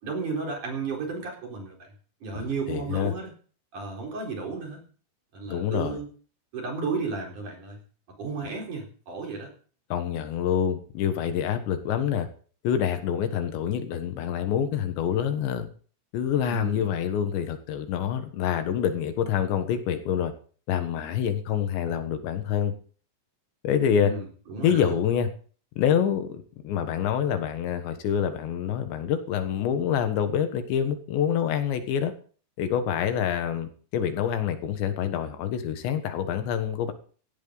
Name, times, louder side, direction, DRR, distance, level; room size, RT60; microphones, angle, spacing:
voice 1, 0.0-1.9 2.2-3.3 3.7-4.8 5.3-6.1 6.5-7.8 8.2-9.5 16.5-16.9 24.0-25.0, right 4 dB, 45° right, 0 dB, 5.3 m, -33 dB
voice 2, 2.3-3.1 5.5-6.0 8.4-8.5 9.9-12.3 12.6-15.7 16.1-20.3 20.7-22.7 23.6-24.1 24.6-25.3 25.8-32.1 32.6-36.9, left 8 dB, 75° left, 8 dB, 3.6 m, -26 dB
17.0 x 14.5 x 4.0 m, 0.42 s
omnidirectional pair, 5.2 m